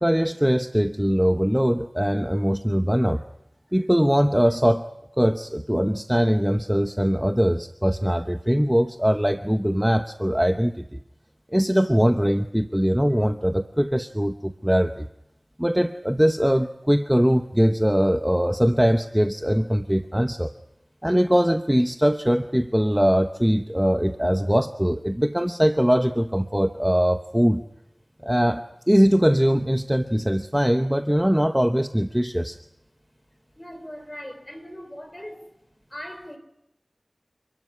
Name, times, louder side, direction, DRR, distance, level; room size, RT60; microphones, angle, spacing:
voice 1, 0.0-3.2 3.7-4.9 5.2-11.0 11.5-15.1 15.6-20.5 21.0-27.6 28.2-32.6, equal, 5° right, 0.9 m, -21 dB
voice 2, 33.6-35.5 35.9-36.4, equal, 20° left, 4.3 m, -39 dB
28.5 x 13.0 x 9.8 m
wide cardioid pair, 55°, 0 cm